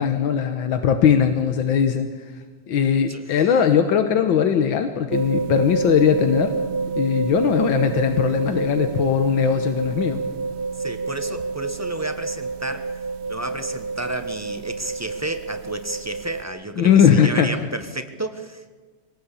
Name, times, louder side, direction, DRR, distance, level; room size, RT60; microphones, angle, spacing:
voice 1, 0.0-2.1 2.7-6.5 7.0-10.2 16.8-17.5, left 8 dB, 85° left, 7 dB, 1.9 m, -19 dB
sound 1, 5.1-16.4, right 4 dB, 45° right, 0.9 m, -28 dB
voice 2, 10.8-12.9 13.3-18.8, right 1 dB, 10° right, 7 dB, 0.8 m, -31 dB
24.0 x 18.0 x 8.4 m, 1.4 s
omnidirectional pair, 2.1 m